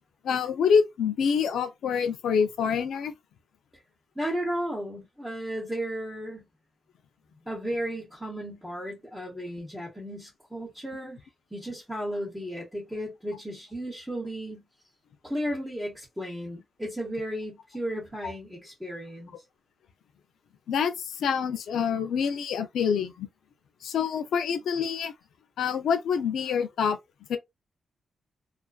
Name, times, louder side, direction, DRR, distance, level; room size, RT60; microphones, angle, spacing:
voice 1, 0.2-3.1 18.2-18.3 20.7-23.3 23.8-25.1 25.6-27.0 27.3-27.4, left 6 dB, 90° left, 0.4 m, -26 dB
voice 2, 4.1-6.5 7.4-11.2 11.5-14.6 15.2-19.3, equal, 5° right, 1.0 m, -34 dB
2.4 x 2.2 x 2.3 m
cardioid pair, 100°, 0 cm